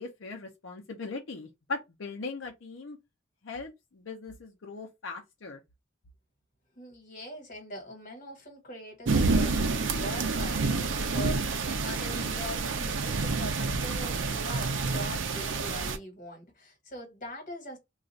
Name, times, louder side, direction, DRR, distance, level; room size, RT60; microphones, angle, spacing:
voice 1, 0.0-3.0 3.4-5.6, left 3 dB, 90° left, 0.7 m, -39 dB
voice 2, 6.7-17.8, equal, 45° left, 1.5 m, -42 dB
sound 1, 9.1-16.0, right 3 dB, 75° right, 0.5 m, -28 dB
2.5 x 2.4 x 4.1 m
head